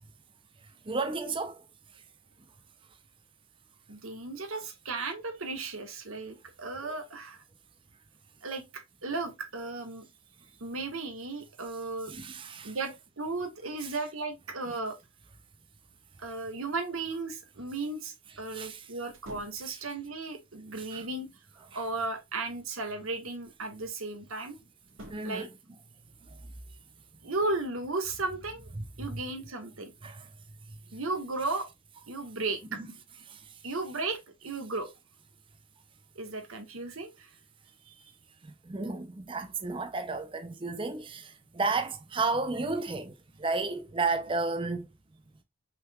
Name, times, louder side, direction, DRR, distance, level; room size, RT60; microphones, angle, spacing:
voice 1, 0.9-1.6 6.8-6.9 12.1-12.7 18.5-18.8 19.7-19.8 20.9-21.0 21.7-21.8 25.1-25.5 28.8-28.9 29.1-29.2 30.0-30.3 33.3-33.4 38.4-44.9, right 3 dB, 25° right, 0.5 m, -32 dB
voice 2, 3.9-7.4 8.4-10.1 10.6-12.1 12.6-15.0 16.2-21.3 21.7-24.6 25.2-25.5 27.2-28.7 29.0-29.9 30.9-31.7 32.1-32.8 33.6-34.9 36.1-37.3 37.9-38.0, right 3 dB, 90° right, 1.5 m, -35 dB
sound 1, 19.1-19.7 21.4-22.2 24.8-25.5, equal, 70° right, 1.7 m, -50 dB
5.6 x 3.9 x 2.3 m
head